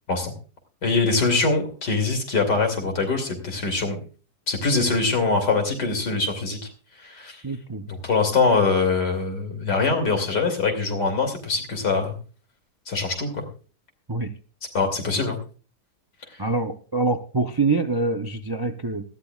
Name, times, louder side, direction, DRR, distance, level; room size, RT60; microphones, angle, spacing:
voice 1, 0.8-4.0 4.5-6.7 7.0-7.4 7.9-12.2 12.9-13.4 14.7-15.4, left 4 dB, 85° left, 4 dB, 3.4 m, -23 dB
voice 2, 7.4-7.8 14.1-14.3 16.4-19.0, right 3 dB, 40° right, 5 dB, 0.3 m, -25 dB
19.5 x 13.5 x 2.4 m, 0.37 s
omnidirectional pair, 1.8 m